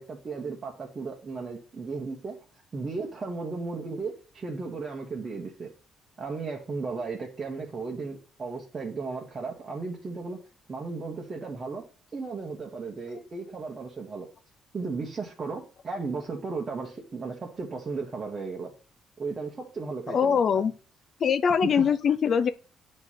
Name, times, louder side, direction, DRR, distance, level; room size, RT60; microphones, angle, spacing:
voice 1, 0.0-2.4 2.7-5.7 6.2-10.4 10.7-11.9 12.1-14.3 14.7-18.7 19.2-20.6 21.6-21.9, right 4 dB, 30° right, 1.4 m, -35 dB
voice 2, 20.1-20.7 21.2-22.5, left 7 dB, 50° left, 0.4 m, -23 dB
9.5 x 3.2 x 5.7 m
cardioid pair, 110°, 0 cm